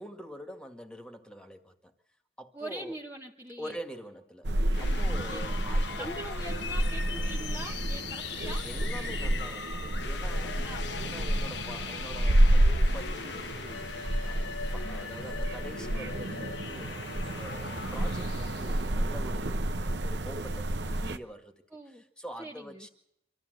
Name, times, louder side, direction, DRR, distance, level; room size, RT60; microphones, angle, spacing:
voice 1, 0.0-1.9 2.4-3.0 3.6-6.1 7.9-8.0 8.6-10.7 11.0-14.0 14.2-21.6 21.9-22.9, equal, 5° left, 6 dB, 1.9 m, -45 dB
voice 2, 2.5-3.8 5.3-5.7 6.0-8.7 10.6-10.9 21.7-22.0 22.4-22.9, right 1 dB, 10° right, -1 dB, 1.1 m, -42 dB
sound 1, 4.4-21.2, right 1 dB, 75° right, 1.0 m, -29 dB
sound 2, 4.7-18.9, left 6 dB, 75° left, 1.0 m, -40 dB
25.5 x 14.0 x 7.9 m, 0.77 s
head